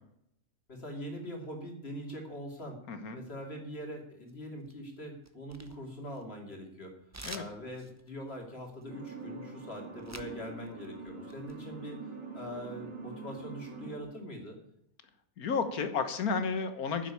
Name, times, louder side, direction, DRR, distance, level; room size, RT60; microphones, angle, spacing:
voice 1, 0.7-2.8 3.1-6.9 7.3-12.0 12.3-14.6, equal, 45° left, 2 dB, 3.0 m, -42 dB
voice 2, 2.9-3.2 7.2-7.4 15.4-17.1, left 5 dB, 85° left, 9 dB, 1.7 m, -32 dB
sound 1, 4.3-4.9 5.2-6.5 7.1-10.4 10.7-11.5, right 2 dB, 15° right, 0.6 m, -48 dB
sound 2, 8.9-14.0, right 4 dB, 65° right, 2.3 m, -44 dB
10.0 x 7.7 x 8.4 m, 0.77 s
omnidirectional pair, 1.5 m